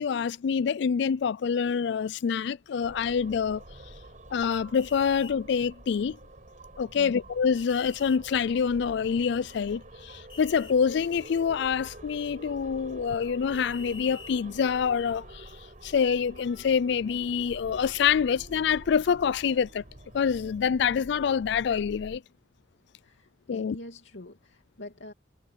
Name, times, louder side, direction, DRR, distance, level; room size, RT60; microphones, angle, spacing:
voice 1, 0.0-3.6 4.3-6.2 6.8-15.4 15.8-19.8 20.1-22.2 23.5-23.8, left 6 dB, 65° left, 0.4 m, -26 dB
sound 1, 2.8-22.2, right 1 dB, 45° right, 6.6 m, -48 dB
sound 2, 4.5-5.4 7.6-8.2 10.3-10.7 13.5-14.4, left 5 dB, 30° left, 3.5 m, -46 dB
voice 2, 23.0-25.1, left 1 dB, 85° left, 2.6 m, -45 dB
head